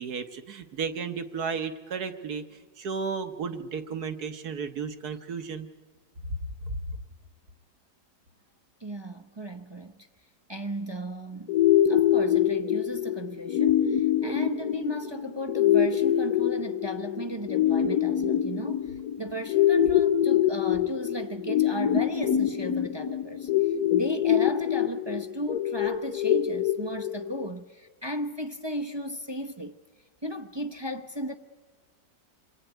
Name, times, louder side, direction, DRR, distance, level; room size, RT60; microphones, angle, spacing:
voice 1, 0.0-2.4 2.8-5.7 6.3-6.4 6.7-7.0, right 5 dB, 60° right, 1.7 m, -33 dB
voice 2, 8.8-10.0 10.5-11.5 11.8-29.7 30.2-31.4, right 1 dB, 25° right, 0.6 m, -35 dB
sound 1, 11.5-27.5, left 10 dB, 60° left, 1.6 m, -25 dB
26.5 x 21.5 x 9.3 m
omnidirectional pair, 1.9 m